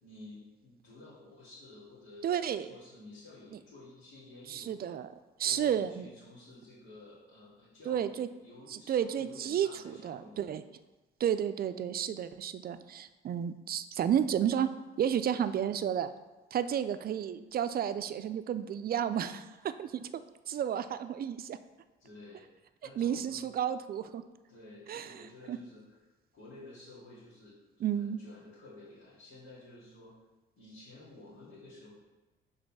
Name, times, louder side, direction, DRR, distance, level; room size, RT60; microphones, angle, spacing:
voice 1, 0.0-5.0 5.4-10.4 22.0-22.5 22.8-23.5 24.5-26.0 26.3-27.5 27.9-30.1 30.6-31.9, left 2 dB, 80° left, -11 dB, 2.3 m, -52 dB
voice 2, 2.2-2.7 4.5-5.1 5.4-6.1 7.9-8.3 8.7-10.6 11.2-14.7 15.0-16.1 16.5-20.2 20.5-21.6 23.0-24.2 24.9-25.1 25.5-25.6 27.8-28.2, right 9 dB, 50° right, 12 dB, 0.4 m, -32 dB
5.2 x 4.0 x 6.0 m, 1.1 s
cardioid pair, 90°, 20 cm